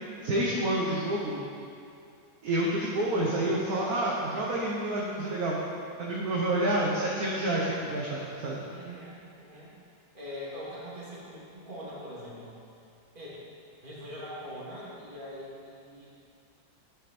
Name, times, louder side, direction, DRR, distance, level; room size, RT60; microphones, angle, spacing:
voice 1, 0.2-1.4 2.4-5.6 6.0-8.6, right 1 dB, 55° right, -5 dB, 1.5 m, -28 dB
voice 2, 8.7-9.7 10.1-12.6 13.1-13.4 13.8-16.3, equal, 25° right, -7 dB, 2.5 m, -42 dB
11.0 x 8.1 x 4.3 m, 2.5 s
omnidirectional pair, 2.1 m